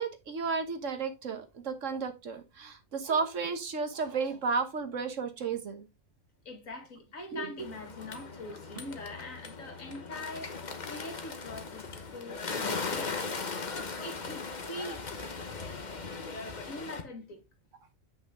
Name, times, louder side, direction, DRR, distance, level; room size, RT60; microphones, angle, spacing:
voice 1, 0.0-5.9 7.3-7.5 15.7-15.8, right 5 dB, 70° right, 1.5 m, -33 dB
voice 2, 6.5-13.6 14.0-15.0 16.7-17.4, left 2 dB, 90° left, 2.3 m, -43 dB
Bird, 7.6-17.0, left 4 dB, 35° left, 1.1 m, -38 dB
7.9 x 5.9 x 3.5 m
omnidirectional pair, 1.4 m